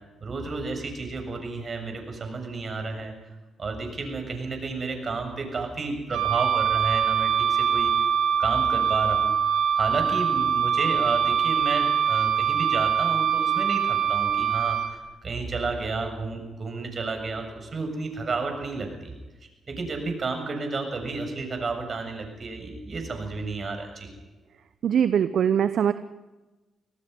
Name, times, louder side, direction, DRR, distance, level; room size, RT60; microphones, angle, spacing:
voice 1, 0.2-3.1 3.6-7.9 8.4-19.1 19.7-24.1, right 3 dB, 45° right, 5 dB, 6.9 m, -31 dB
Wind instrument woodwind instrument, 6.1-14.9, right 8 dB, 85° right, 2.0 m, -23 dB
voice 2, 24.8-25.9, right 8 dB, 65° right, 12 dB, 0.8 m, -22 dB
26.0 x 18.5 x 5.5 m, 1.1 s
supercardioid pair, 60°, 0 cm